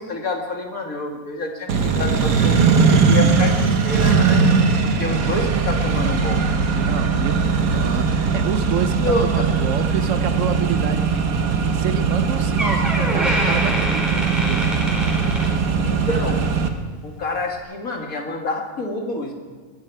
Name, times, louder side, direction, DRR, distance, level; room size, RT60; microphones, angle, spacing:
voice 1, 0.0-4.4 4.8-6.4 9.0-9.4 15.8-16.4 17.0-19.3, left 2 dB, 75° left, 2 dB, 2.6 m, -27 dB
Accelerating revving vroom, 1.7-16.7, right 5 dB, 80° right, 1.6 m, -19 dB
voice 2, 6.8-11.2 11.5-15.0, right 7 dB, 65° right, 11 dB, 1.1 m, -29 dB
Door, 12.1-12.2 12.6-16.1 16.4-16.7 17.4-17.5, equal, ahead, 4.2 m, -26 dB
21.5 x 13.5 x 4.7 m, 1.5 s
omnidirectional pair, 1.5 m